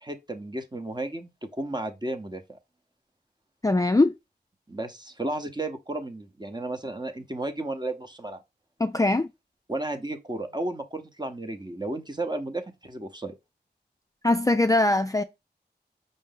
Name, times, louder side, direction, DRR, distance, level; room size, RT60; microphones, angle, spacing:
voice 1, 0.0-2.6 4.7-8.4 9.7-13.3, right 2 dB, 25° right, 0.9 m, -33 dB
voice 2, 3.6-4.1 8.8-9.3 14.2-15.2, left 2 dB, 20° left, 0.4 m, -21 dB
5.3 x 2.6 x 3.8 m
wide cardioid pair, 50°, 18 cm